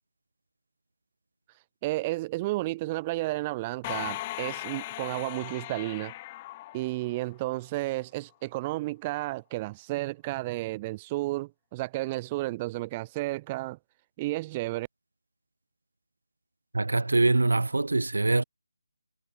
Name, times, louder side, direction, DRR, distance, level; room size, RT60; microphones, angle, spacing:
voice 1, 1.8-6.1 6.7-13.8 14.2-14.9, right 19 dB, 20° right, 1.0 m, -32 dB
sound 1, 3.8-7.5, left 17 dB, 20° left, 5.1 m, -38 dB
voice 2, 16.7-18.4, right 2 dB, 80° right, 1.2 m, -24 dB
figure-of-eight pair, 160°, 0 cm